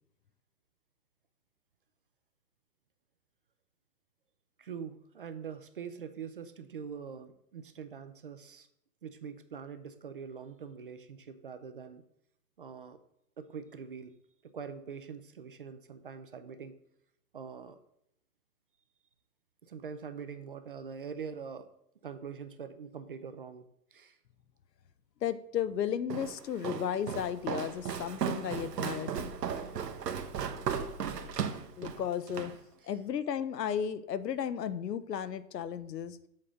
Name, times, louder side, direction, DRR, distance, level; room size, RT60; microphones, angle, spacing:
voice 1, 4.6-8.7 9.0-12.0 12.6-13.0 13.4-14.2 14.4-16.7 17.3-17.8 19.6-21.7 22.0-24.2 29.5-29.7 32.8-32.9, right 6 dB, 35° right, 10 dB, 0.4 m, -44 dB
voice 2, 25.2-29.6 31.8-32.5 32.9-36.2, left 9 dB, 85° left, 14 dB, 0.8 m, -34 dB
Walk footsteps, 26.1-32.6, right 7 dB, 80° right, 1.1 m, -36 dB
7.6 x 3.8 x 6.1 m, 0.75 s
hypercardioid pair, 145°, 48 cm